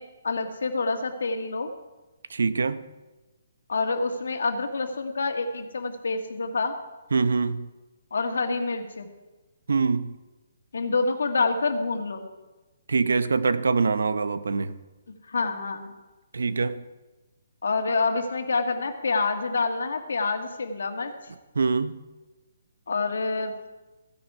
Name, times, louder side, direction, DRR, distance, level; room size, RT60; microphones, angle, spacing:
voice 1, 0.0-1.7 3.7-6.8 8.1-9.1 10.7-12.3 15.3-15.8 17.6-21.1 22.9-23.5, left 3 dB, 75° left, 1.8 m, -27 dB
voice 2, 2.3-2.8 7.1-7.7 9.7-10.1 12.9-14.8 16.3-16.8 21.5-22.0, right 4 dB, 85° right, 0.9 m, -24 dB
15.5 x 10.5 x 4.8 m
hypercardioid pair, 180°, 0 cm